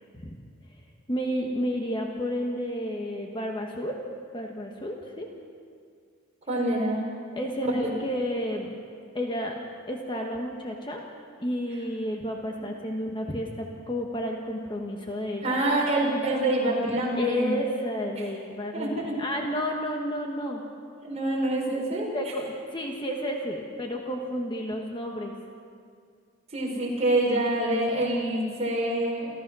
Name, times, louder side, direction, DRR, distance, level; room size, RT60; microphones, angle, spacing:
voice 1, 1.1-4.0 4.3-5.3 7.3-8.7 9.1-9.6 9.9-11.0 11.4-15.6 17.2-20.6 22.1-25.3, equal, 25° left, 1 dB, 1.5 m, -31 dB
voice 2, 6.5-7.0 7.8-7.9 15.4-17.5 18.7-19.1 21.0-22.1 26.5-29.3, right 1 dB, 35° right, -3 dB, 5.2 m, -26 dB
28.5 x 14.5 x 6.3 m, 2.2 s
head